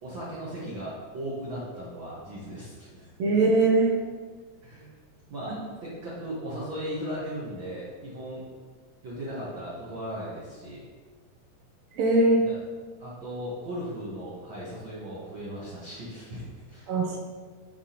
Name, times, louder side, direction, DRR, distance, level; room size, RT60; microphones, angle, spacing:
voice 1, 0.0-3.1 3.5-3.6 4.6-4.9 5.3-8.5 9.0-10.8 12.4-12.6 13.0-16.9, equal, 50° right, -7 dB, 1.7 m, -37 dB
voice 2, 3.2-3.9 12.0-12.4 16.9-17.2, right 2 dB, 70° right, -1 dB, 1.9 m, -21 dB
11.5 x 4.7 x 2.9 m, 1.5 s
omnidirectional pair, 3.5 m